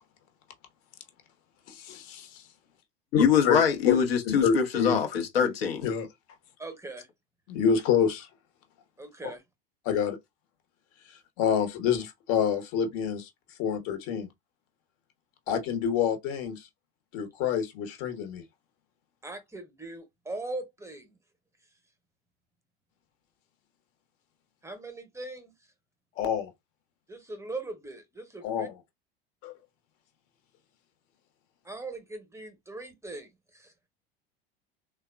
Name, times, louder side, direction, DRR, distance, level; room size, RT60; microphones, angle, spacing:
voice 1, 1.7-2.4 3.1-3.6 3.9-4.0 4.3-5.0 5.8-6.1 7.5-8.3 9.8-10.2 11.4-13.3 13.6-14.3 15.5-16.7 17.1-18.4 26.2-26.5 28.4-28.7 29.4-29.5, left 7 dB, 50° left, 0.9 m, -27 dB
voice 2, 3.2-5.9, left 7 dB, 80° left, 0.8 m, -24 dB
voice 3, 6.6-7.1 9.0-9.4 19.2-21.2 24.6-25.5 27.1-28.7 31.6-33.7, right 2 dB, 10° right, 0.8 m, -40 dB
3.5 x 2.2 x 2.2 m
figure-of-eight pair, 75°, 30 cm